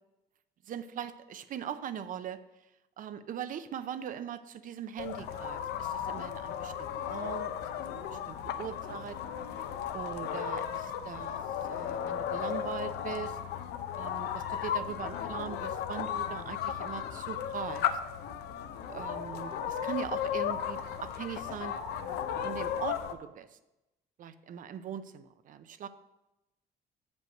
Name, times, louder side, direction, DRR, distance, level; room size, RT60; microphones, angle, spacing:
voice 1, 0.7-2.4 3.0-7.5 8.1-9.2 9.9-11.4 11.7-13.4 14.0-17.8 18.9-21.8 22.4-23.5 24.2-25.9, right 9 dB, 50° right, 12 dB, 0.6 m, -40 dB
sound 1, 5.0-23.1, left 9 dB, 80° left, 0.7 m, -35 dB
7.7 x 5.4 x 6.0 m, 0.95 s
cardioid pair, 110°, 17 cm